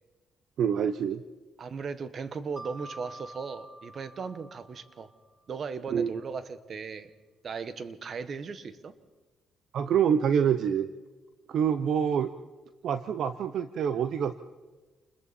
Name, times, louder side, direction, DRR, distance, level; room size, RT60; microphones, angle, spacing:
voice 1, 0.6-1.2 5.9-6.1 9.7-10.9 11.5-12.3 12.8-14.3, right 8 dB, 70° right, 12 dB, 0.7 m, -26 dB
voice 2, 1.6-5.1 5.5-7.1 7.4-8.9, right 5 dB, 50° right, 12 dB, 1.4 m, -37 dB
Mallet percussion, 2.6-5.3, right 1 dB, 15° right, 2.7 m, -47 dB
29.0 x 21.5 x 4.3 m, 1.2 s
cardioid pair, 90°, 0 cm